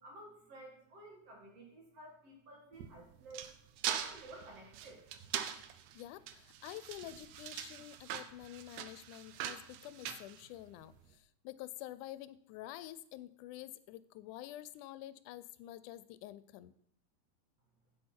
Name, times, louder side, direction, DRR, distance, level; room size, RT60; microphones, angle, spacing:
voice 1, 0.0-3.5 4.0-5.3, right 1 dB, 55° right, 0 dB, 2.8 m, -53 dB
sound 1, 2.7-11.0, right 10 dB, 75° right, 1.9 m, -42 dB
voice 2, 5.9-16.7, left 14 dB, 90° left, 16 dB, 2.1 m, -48 dB
10.0 x 8.2 x 4.4 m, 0.66 s
omnidirectional pair, 3.5 m